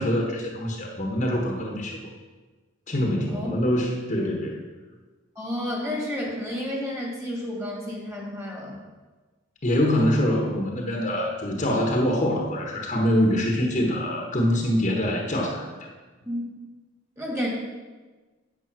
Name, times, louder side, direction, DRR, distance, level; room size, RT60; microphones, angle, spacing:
voice 1, 0.0-2.0 2.9-4.6 9.6-15.7, equal, 35° left, 0 dB, 1.3 m, -24 dB
voice 2, 5.4-8.8 16.3-16.4 17.2-17.5, equal, 15° right, -1 dB, 2.1 m, -31 dB
8.8 x 7.9 x 6.1 m, 1.3 s
head